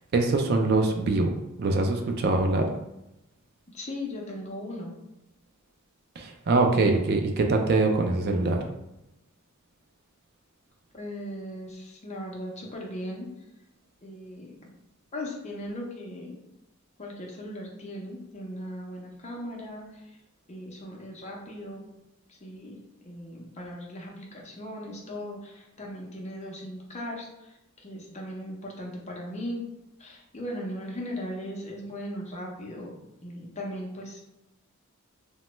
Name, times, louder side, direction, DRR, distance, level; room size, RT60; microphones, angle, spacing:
voice 1, 0.1-1.3 1.6-2.7 6.2-8.6, right 3 dB, 50° right, 3 dB, 0.3 m, -23 dB
voice 2, 3.7-5.0 10.9-13.3 14.0-14.7 15.1-16.4 17.0-20.0 20.5-21.9 22.3-22.8 23.0-29.6 30.0-34.2, left 1 dB, 30° left, -1 dB, 0.6 m, -38 dB
3.0 x 2.1 x 3.0 m, 0.91 s
head